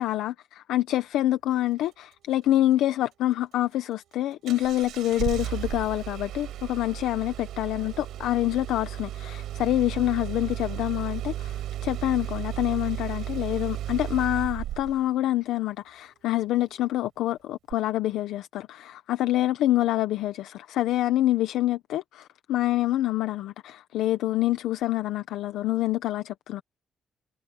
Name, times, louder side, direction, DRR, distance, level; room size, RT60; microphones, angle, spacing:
voice 1, 0.0-26.6, left 14 dB, 85° left, 0.8 m, -26 dB
Engine starting, 4.5-15.1 17.7-17.8, right 12 dB, 80° right, 4.1 m, -34 dB
cardioid pair, 90°, 0 cm